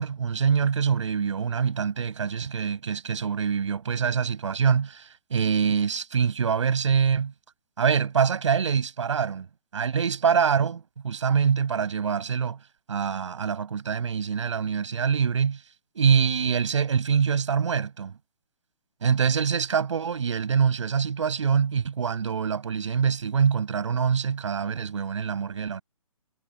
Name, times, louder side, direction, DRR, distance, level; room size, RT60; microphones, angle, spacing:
voice 1, 0.0-7.3 7.8-9.5 9.7-12.6 12.9-15.6 15.9-18.1 19.0-25.8, right 6 dB, 55° right, 6.3 m, -25 dB
figure-of-eight pair, 130°, 18 cm